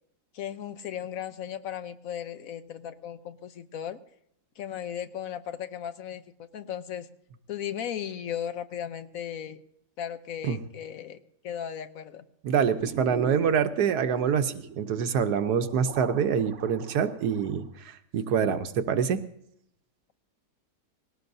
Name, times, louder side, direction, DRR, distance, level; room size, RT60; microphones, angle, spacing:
voice 1, 0.3-4.0 4.6-7.1 7.5-9.6 10.0-12.2, left 9 dB, 65° left, 11 dB, 1.1 m, -36 dB
voice 2, 12.4-19.2, right 7 dB, 75° right, 9 dB, 1.3 m, -26 dB
sound 1, 12.6-17.8, right 6 dB, 55° right, 1.1 m, -43 dB
20.0 x 17.5 x 2.7 m, 0.72 s
omnidirectional pair, 1.7 m